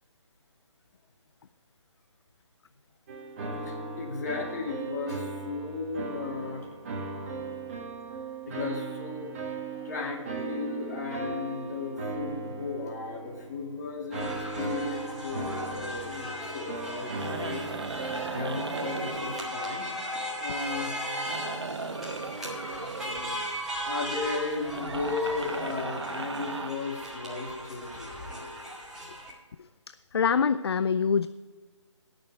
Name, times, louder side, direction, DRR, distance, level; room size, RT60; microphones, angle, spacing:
sound 1, 3.1-18.7, right 3 dB, 25° right, 1.4 m, -37 dB
voice 1, 3.7-6.7 8.5-9.3 9.8-17.6 18.3-20.9 23.8-28.1, left 4 dB, 35° left, 0 dB, 2.3 m, -35 dB
sound 2, 14.1-29.3, equal, ahead, 1.7 m, -37 dB
sound 3, 16.9-20.4 20.8-23.7 24.6-26.7, right 4 dB, 60° right, 0.7 m, -38 dB
voice 2, 29.9-31.3, left 6 dB, 55° left, 13 dB, 0.4 m, -25 dB
18.0 x 6.5 x 4.5 m, 1.4 s
figure-of-eight pair, 150°, 16 cm